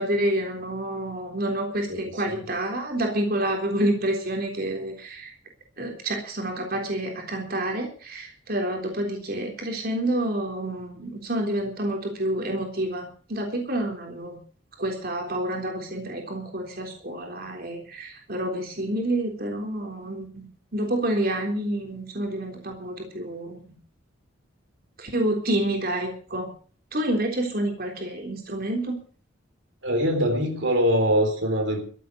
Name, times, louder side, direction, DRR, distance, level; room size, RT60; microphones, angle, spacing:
voice 1, 0.0-5.3 5.8-14.4 14.8-20.4 20.7-23.6 25.0-26.5 26.9-29.0, right 1 dB, 50° right, 2 dB, 3.6 m, -28 dB
voice 2, 29.8-31.8, equal, 75° right, 4 dB, 3.8 m, -23 dB
14.0 x 8.6 x 8.2 m, 0.43 s
head